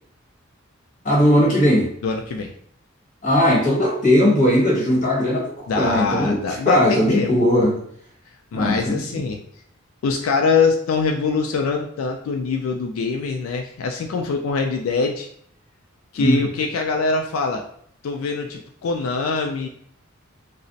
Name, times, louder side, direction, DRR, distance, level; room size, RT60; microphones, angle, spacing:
voice 1, 1.0-1.9 3.2-6.4 6.6-7.7 8.5-9.0 16.2-16.4, left 1 dB, 40° left, -4 dB, 1.1 m, -18 dB
voice 2, 2.0-2.5 5.7-7.3 8.5-9.4 10.0-15.3 16.1-17.6 18.0-19.7, left 4 dB, 90° left, 3 dB, 0.3 m, -23 dB
2.4 x 2.0 x 3.9 m, 0.64 s
head